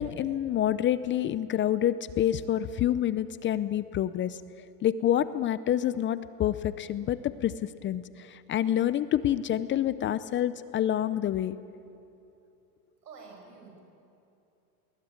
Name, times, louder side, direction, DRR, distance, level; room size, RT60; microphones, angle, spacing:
voice 1, 0.0-4.4 4.8-11.6, left 11 dB, 25° left, 16 dB, 0.6 m, -27 dB
voice 2, 13.0-13.8, right 4 dB, 90° right, 2 dB, 6.5 m, -48 dB
21.0 x 20.0 x 8.7 m, 2.8 s
hypercardioid pair, 110°, 47 cm